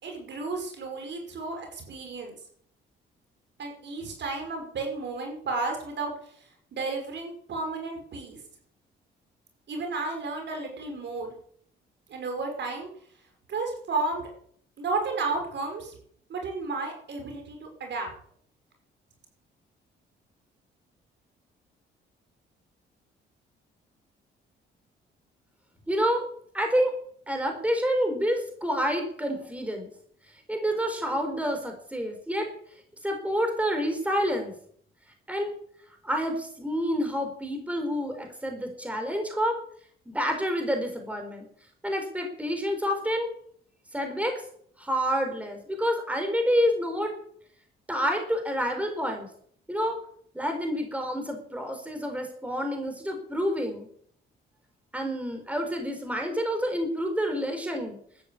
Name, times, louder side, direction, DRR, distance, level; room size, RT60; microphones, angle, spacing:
voice 1, 0.0-2.4 3.6-6.1 6.7-8.4 9.7-11.4 12.1-12.9 13.5-14.3 14.8-16.0 16.3-18.1, right 3 dB, 65° right, 3 dB, 5.5 m, -32 dB
voice 2, 25.9-26.9 27.3-29.9 30.5-32.5 33.0-34.5 35.3-35.5 36.0-39.6 40.1-41.5 41.8-43.3 43.9-44.4 44.8-47.1 47.9-49.3 49.7-50.0 50.3-53.9 54.9-58.0, equal, 5° right, 4 dB, 4.4 m, -28 dB
13.5 x 10.5 x 8.3 m, 0.62 s
cardioid pair, 90°, 20 cm